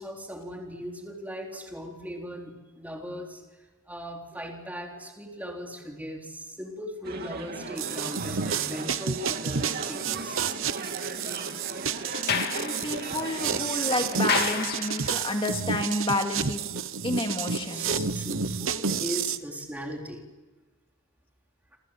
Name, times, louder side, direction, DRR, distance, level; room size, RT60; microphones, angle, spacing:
voice 1, 0.0-3.4 3.9-10.6 17.7-20.3 21.7-21.8, equal, 5° right, 0 dB, 3.9 m, -38 dB
sound 1, 7.0-14.5, right 3 dB, 45° right, 2.8 m, -38 dB
sound 2, 7.8-19.4, right 6 dB, 65° right, 1.0 m, -30 dB
Sliding door, 12.1-15.4, left 6 dB, 45° left, 2.6 m, -32 dB
voice 2, 12.5-16.6 17.0-18.1, left 1 dB, 25° left, 3 dB, 2.4 m, -30 dB
28.5 x 25.0 x 7.7 m, 1.3 s
head